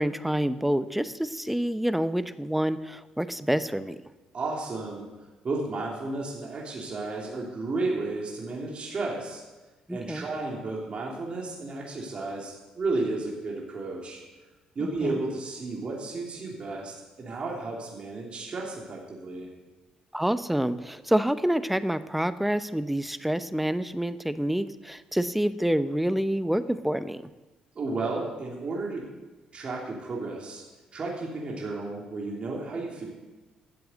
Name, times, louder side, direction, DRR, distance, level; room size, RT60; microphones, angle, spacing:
voice 1, 0.0-4.0 9.9-10.2 14.8-15.2 20.1-27.2, right 1 dB, 5° right, 13 dB, 0.7 m, -27 dB
voice 2, 4.3-5.1 5.4-9.4 9.9-14.2 14.7-19.5 27.7-29.0 29.5-30.6 30.9-33.0, right 3 dB, 45° right, -3 dB, 3.0 m, -33 dB
12.5 x 7.8 x 8.1 m, 1.2 s
supercardioid pair, 65°, 3 cm